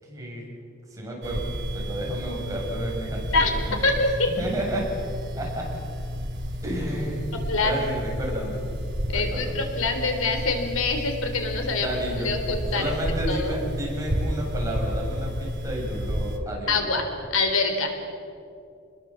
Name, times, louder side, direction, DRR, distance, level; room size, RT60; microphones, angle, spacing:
voice 1, 0.1-0.4 0.9-3.8 4.4-4.9 5.4-5.7 6.6-8.7 9.1-9.6 11.8-12.3 12.7-16.8, right 1 dB, 15° right, -3 dB, 6.9 m, -31 dB
sound 1, 1.2-16.4, equal, 55° right, 2.6 m, -31 dB
voice 2, 3.8-4.3 7.3-7.8 9.1-12.0 12.2-12.9 13.3-13.6 16.7-18.0, left 3 dB, 90° left, 5 dB, 3.8 m, -25 dB
29.5 x 21.0 x 7.5 m, 2.5 s
head